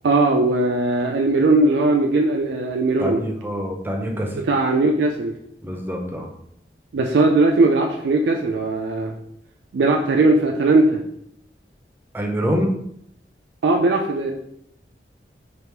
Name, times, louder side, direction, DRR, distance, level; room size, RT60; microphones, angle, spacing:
voice 1, 0.0-3.2 4.5-5.3 6.9-9.1 9.7-11.0 13.6-14.3, right 2 dB, 85° right, 2 dB, 0.4 m, -19 dB
voice 2, 3.0-4.4 5.6-6.3 12.1-12.7, equal, 10° right, 2 dB, 0.5 m, -25 dB
3.5 x 2.4 x 4.4 m, 0.73 s
head